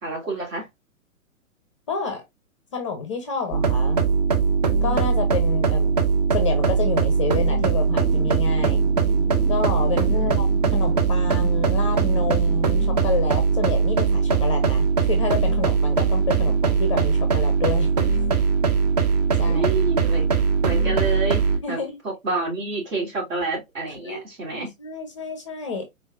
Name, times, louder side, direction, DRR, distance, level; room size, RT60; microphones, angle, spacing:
voice 1, 0.0-0.7 10.1-10.4 16.3-16.6 19.4-20.3 20.6-21.8 22.0-24.7, right 3 dB, 65° right, 2.4 m, -29 dB
voice 2, 1.9-2.2 2.7-4.0 4.8-6.0 6.3-8.8 9.5-17.9 19.3-19.6 21.6-22.0 24.0-24.3 24.5-25.9, left 5 dB, 25° left, 0.5 m, -29 dB
sound 1, 3.5-21.6, right 5 dB, 30° right, 0.5 m, -20 dB
sound 2, 7.6-13.0, right 1 dB, 5° right, 1.6 m, -36 dB
4.1 x 3.6 x 2.4 m
figure-of-eight pair, 115°, 42 cm